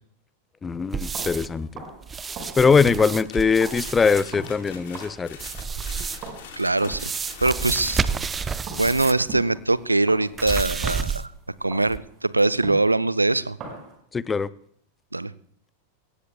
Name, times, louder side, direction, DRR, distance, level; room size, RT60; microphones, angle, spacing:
voice 1, 0.6-1.8 2.6-5.4 14.1-14.5, left 5 dB, 15° left, 19 dB, 0.5 m, -21 dB
sound 1, 0.9-1.6 2.0-4.3 5.3-6.4 6.9-9.3 9.6-9.7 10.4-11.5 11.9-12.0, right 5 dB, 15° right, 0.7 m, -30 dB
sound 2, 1.0-11.2 11.7-13.9, right 3 dB, 35° right, 5.3 m, -42 dB
sound 3, 3.3-8.6, left 6 dB, 55° left, 3.8 m, -44 dB
voice 2, 6.6-7.0 7.4-8.0 8.8-11.3 11.6-13.6 15.1-15.3, right 2 dB, 85° right, 19 dB, 0.5 m, -22 dB
22.5 x 18.5 x 2.3 m, 0.64 s
figure-of-eight pair, 90°, 0 cm